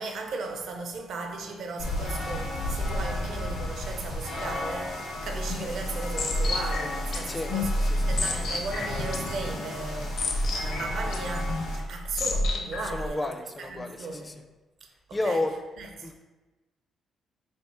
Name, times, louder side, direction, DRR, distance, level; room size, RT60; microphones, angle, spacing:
voice 1, 0.0-7.7 8.1-13.3 13.6-14.3 15.1-15.4 15.8-16.1, right 3 dB, 65° right, 0.6 m, -37 dB
sound 1, 1.8-11.8, left 1 dB, 80° left, 1.5 m, -34 dB
sound 2, 5.1-13.1, left 1 dB, 65° left, 0.6 m, -30 dB
voice 2, 7.8-8.3 12.8-14.4 15.1-15.5 16.0-16.2, left 2 dB, 20° left, 0.4 m, -32 dB
3.5 x 3.0 x 4.2 m
cardioid pair, 90°, 0 cm